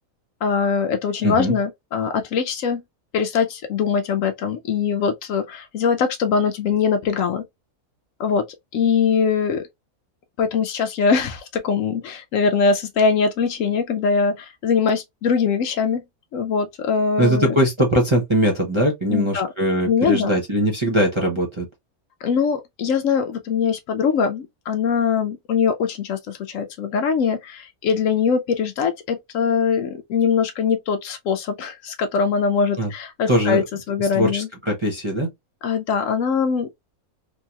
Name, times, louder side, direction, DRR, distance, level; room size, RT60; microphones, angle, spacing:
voice 1, 0.4-2.8 3.1-7.4 8.2-8.4 8.7-9.6 10.4-16.0 16.3-17.6 19.1-19.5 19.8-20.3 22.2-34.5 35.6-36.7, left 6 dB, 70° left, 0.9 m, -22 dB
voice 2, 1.2-1.6 17.2-21.6 32.8-32.9 33.3-33.6 34.0-35.3, right 1 dB, 30° right, 0.6 m, -21 dB
3.1 x 2.8 x 2.3 m
omnidirectional pair, 1.5 m